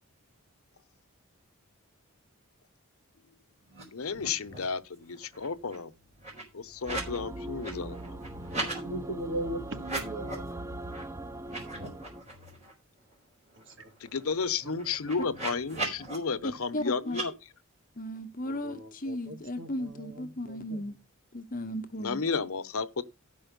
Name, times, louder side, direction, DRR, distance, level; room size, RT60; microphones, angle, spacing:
sound 1, 3.7-4.8 5.1-7.2 7.5-8.8 9.8-10.5 10.9-11.0 11.4-12.7 13.1-13.2 13.5-16.2 17.1-17.3, right 2 dB, 30° right, 4.4 m, -39 dB
voice 1, 3.9-5.9 6.5-8.2 14.0-17.3 22.0-23.0, left 5 dB, 75° left, 0.9 m, -32 dB
sound 2, 6.9-12.2, right 1 dB, 15° right, 0.5 m, -40 dB
voice 2, 8.8-10.4 13.8-13.9 14.6-14.8 15.8-15.9 18.4-20.8, right 1 dB, 55° right, 1.8 m, -39 dB
voice 3, 16.4-17.2 18.0-21.0 21.3-22.2, left 1 dB, 40° left, 1.0 m, -36 dB
13.0 x 5.5 x 5.2 m
head